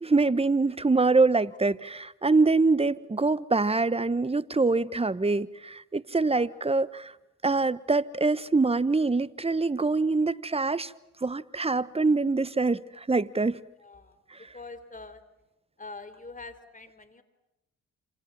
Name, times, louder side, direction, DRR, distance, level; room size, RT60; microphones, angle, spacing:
voice 1, 0.0-7.1 7.4-10.9 11.2-13.6 14.3-14.4, right 3 dB, 15° right, 1.2 m, -24 dB
voice 2, 6.1-6.6 13.8-15.2 15.8-17.2, left 3 dB, 25° left, 3.9 m, -45 dB
28.0 x 27.0 x 7.4 m
supercardioid pair, 55°, 34 cm